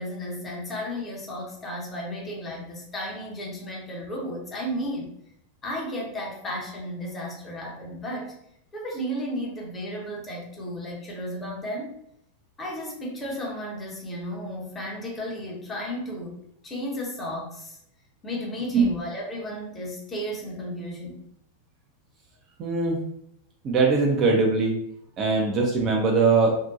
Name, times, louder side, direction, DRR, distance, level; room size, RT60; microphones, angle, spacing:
voice 1, 0.0-5.2 5.6-8.4 8.7-12.0 12.6-17.8 18.2-21.2, equal, 20° left, -3 dB, 0.8 m, -34 dB
voice 2, 22.6-23.0 23.6-24.8 25.2-26.6, right 4 dB, 30° right, 0 dB, 0.5 m, -21 dB
2.7 x 2.1 x 2.4 m, 0.74 s
figure-of-eight pair, 90°, 0 cm